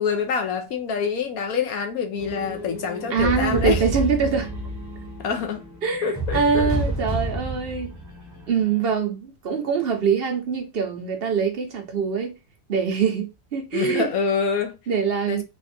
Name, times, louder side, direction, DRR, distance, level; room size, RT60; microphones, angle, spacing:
voice 1, 0.0-3.8 5.2-5.6 6.0-6.7 13.7-14.8 15.3-15.4, left 6 dB, 70° left, 1.2 m, -26 dB
sound 1, 2.2-8.9, right 1 dB, 15° right, 0.8 m, -30 dB
voice 2, 3.1-4.5 5.8-8.0 8.5-12.4 12.7-14.1 14.9-15.4, right 6 dB, 50° right, 0.7 m, -24 dB
3.5 x 2.5 x 4.2 m
omnidirectional pair, 1.7 m